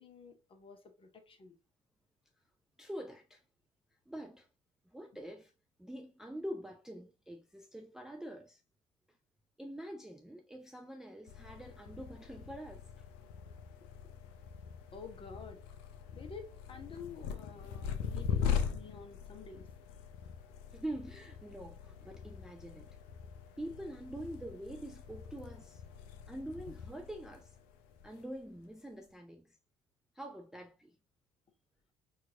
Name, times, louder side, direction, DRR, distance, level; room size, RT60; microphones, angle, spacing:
voice 1, 0.0-1.5 14.9-15.6 16.1-19.6, left 5 dB, 30° left, 0.9 m, -50 dB
voice 2, 2.8-3.4 4.1-4.5 4.9-5.5 5.8-8.6 9.6-13.1 20.7-23.0 23.6-25.8 26.3-27.6 28.0-29.6 30.2-30.9, right 1 dB, 5° right, 0.4 m, -45 dB
sound 1, 11.3-28.7, left 7 dB, 60° left, 0.5 m, -41 dB
4.4 x 2.4 x 2.7 m
figure-of-eight pair, 55°, 17 cm